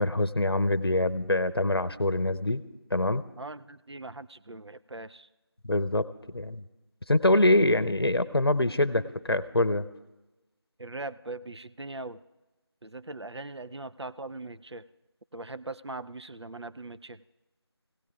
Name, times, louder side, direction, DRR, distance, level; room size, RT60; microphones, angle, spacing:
voice 1, 0.0-2.6 2.9-3.2 5.7-6.1 6.3-6.6 7.1-9.8, left 1 dB, 65° left, 14 dB, 0.7 m, -24 dB
voice 2, 3.4-5.3 10.8-12.2 12.8-14.8 15.3-17.2, right 2 dB, 85° right, 12 dB, 0.5 m, -40 dB
25.5 x 17.0 x 2.3 m, 1.1 s
figure-of-eight pair, 180°, 14 cm